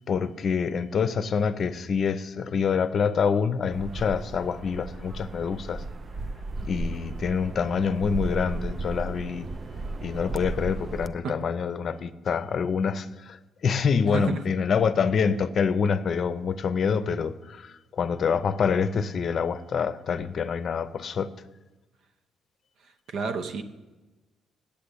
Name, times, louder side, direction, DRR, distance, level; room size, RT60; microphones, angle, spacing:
voice 1, 0.1-5.8 6.6-9.5 10.0-21.3, left 6 dB, 55° left, 0.6 m, -26 dB
sound 1, 3.7-11.1, right 2 dB, 40° right, 0.4 m, -35 dB
voice 2, 14.1-14.5 23.1-23.6, right 5 dB, 75° right, 0.9 m, -30 dB
8.5 x 7.7 x 8.4 m
cardioid pair, 90°, 0 cm